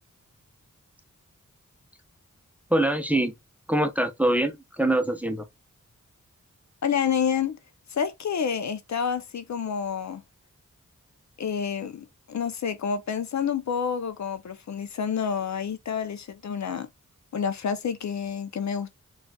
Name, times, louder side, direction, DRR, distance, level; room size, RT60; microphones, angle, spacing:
voice 1, 2.7-3.3 3.7-5.5, right 1 dB, 5° right, 0.6 m, -24 dB
voice 2, 6.8-7.6 7.9-10.2 11.4-16.9 17.3-19.0, left 7 dB, 60° left, 0.5 m, -29 dB
3.8 x 2.4 x 2.2 m
cardioid pair, 50°, 32 cm